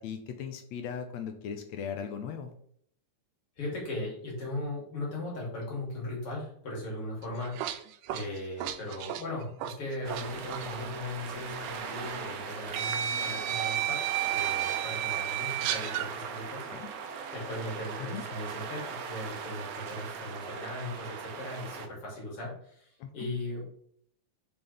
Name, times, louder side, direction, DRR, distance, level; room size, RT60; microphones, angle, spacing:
voice 1, 0.0-2.5 16.7-16.9 18.0-18.2 23.0-23.3, left 7 dB, 75° left, 7 dB, 1.8 m, -38 dB
voice 2, 3.6-7.5 8.1-14.0 14.3-16.7 17.3-23.6, left 1 dB, 45° left, -3 dB, 3.6 m, -38 dB
sound 1, 7.2-10.3 10.5-10.7 11.8-11.9 12.8-16.1, right 11 dB, 90° right, 2.1 m, -32 dB
sound 2, 10.0-21.9, right 6 dB, 70° right, 1.6 m, -39 dB
7.3 x 6.1 x 3.4 m, 0.65 s
omnidirectional pair, 3.6 m